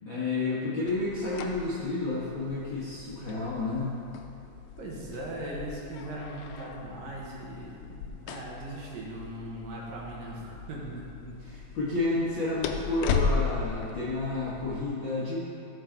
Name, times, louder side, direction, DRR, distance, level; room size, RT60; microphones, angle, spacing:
voice 1, 0.0-4.0 10.8-10.9 11.2-15.4, left 2 dB, 55° left, -9 dB, 1.4 m, -31 dB
sound 1, 0.9-14.8, left 5 dB, 80° left, 2.3 m, -37 dB
voice 2, 4.8-11.1 12.7-13.1, right 1 dB, 70° right, -4 dB, 2.9 m, -39 dB
15.0 x 6.7 x 3.9 m, 2.7 s
omnidirectional pair, 4.3 m